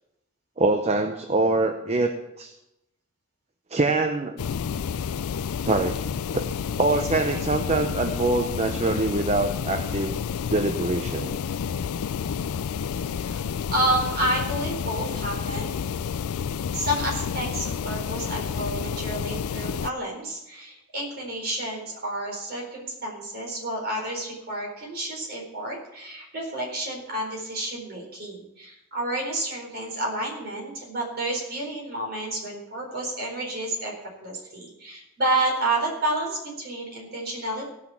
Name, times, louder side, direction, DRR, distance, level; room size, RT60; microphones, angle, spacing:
voice 1, 0.6-2.5 3.7-4.4 5.6-6.0 6.3-6.4 6.8-10.2 10.5-11.4, right 2 dB, 30° right, 6 dB, 0.7 m, -24 dB
sound 1, 4.4-19.9, left 7 dB, 80° left, 0.4 m, -30 dB
voice 2, 13.1-13.5 13.7-15.8 16.7-33.9 34.2-37.7, right 1 dB, 45° right, -1 dB, 4.4 m, -30 dB
16.5 x 5.9 x 7.1 m, 0.89 s
head